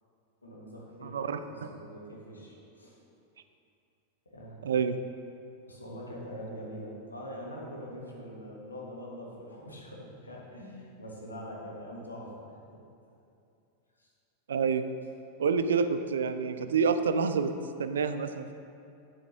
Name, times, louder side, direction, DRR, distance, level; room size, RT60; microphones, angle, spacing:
voice 1, 0.4-1.2 1.5-3.0 4.2-4.6 5.6-12.8 14.0-14.1, equal, 75° left, -3 dB, 1.4 m, -43 dB
voice 2, 1.0-1.7 4.6-5.0 14.5-14.9 15.4-17.5 17.8-18.5, right 5 dB, 65° right, 10 dB, 0.3 m, -28 dB
8.5 x 7.6 x 2.6 m, 2.6 s
figure-of-eight pair, 90°, 0 cm